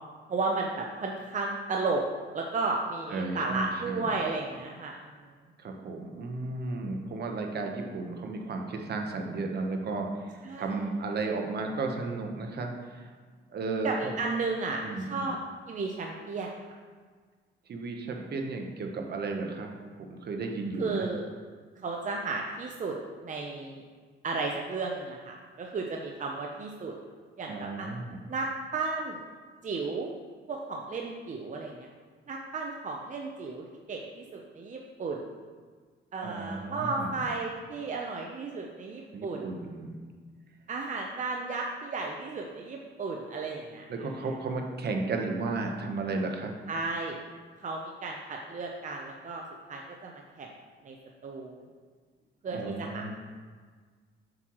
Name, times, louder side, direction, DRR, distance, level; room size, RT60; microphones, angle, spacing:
voice 1, 0.3-2.0 2.3-5.0 10.4-10.9 13.8-15.4 15.7-16.7 20.8-21.3 21.8-23.0 23.2-23.8 24.2-26.9 27.4-27.9 28.3-29.2 29.6-30.1 30.5-31.9 32.3-35.3 36.1-39.6 40.7-44.1 46.7-47.2 47.6-49.4 49.7-50.5 50.8-51.0 51.2-51.7 52.4-53.2, right 3 dB, 40° right, 0 dB, 0.7 m, -34 dB
voice 2, 3.1-4.0 5.6-13.1 13.5-14.1 14.8-15.3 17.7-19.7 20.0-21.1 27.5-28.2 36.2-37.2 39.1-40.0 43.9-46.5 52.5-53.2, right 3 dB, 55° right, 3 dB, 1.1 m, -34 dB
7.6 x 6.2 x 3.1 m, 1.5 s
cardioid pair, 90°, 20 cm